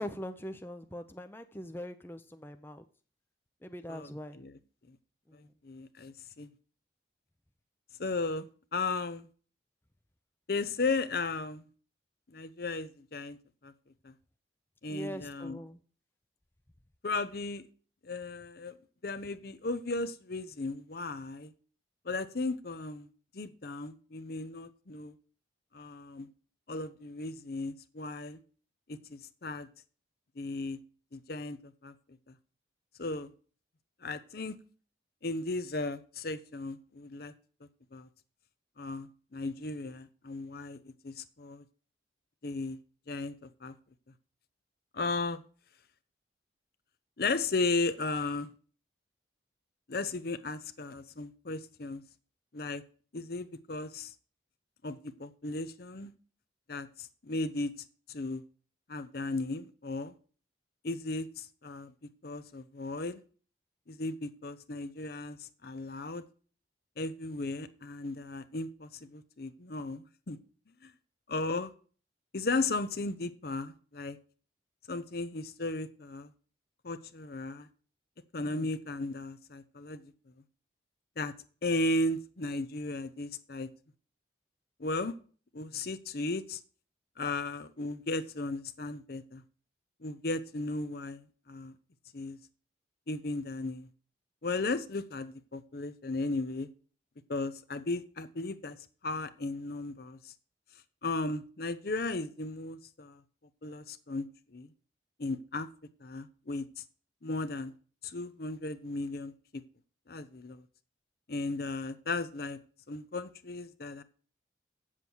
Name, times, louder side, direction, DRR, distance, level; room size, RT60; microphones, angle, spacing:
voice 1, 0.0-2.8 3.6-4.4 5.3-5.5 14.9-15.8, equal, 10° left, 0.6 m, -42 dB
voice 2, 5.3-6.5 8.0-9.3 10.5-11.6 12.3-13.4 13.6-13.7 14.0-14.1 14.8-15.6 17.0-17.6 18.0-18.7 19.0-21.5 22.1-23.1 23.3-25.1 25.7-26.3 26.7-28.4 29.1-29.7 30.4-30.8 31.1-31.6 31.8-31.9 33.0-33.3 34.0-34.6 35.2-37.3 37.9-38.1 38.8-39.1 39.3-40.8 41.0-41.6 42.4-42.8 43.1-43.7 44.9-45.4 47.2-48.5 49.9-52.0 52.5-52.8 53.1-54.1 54.8-56.1 56.7-57.7 58.1-58.4 58.9-60.1 60.8-61.9 62.2-63.2 63.9-66.2 67.0-70.4 70.8-70.9 71.3-71.7 72.3-74.2 74.9-76.3 76.8-77.7 78.3-80.0 81.2-81.3 81.6-83.7 84.8-85.1 85.5-86.6 87.2-89.4 90.0-91.7 92.1-92.4 93.1-93.9 94.4-96.7 97.3-98.8 99.0-100.3 101.0-103.2 103.6-104.3 104.5-104.7 105.2-105.7 106.0-106.7 107.2-107.7 108.0-109.6 110.1-110.6 111.3-112.6 112.9-114.0, left 3 dB, 55° left, 0.7 m, -35 dB
8.3 x 7.4 x 6.1 m
head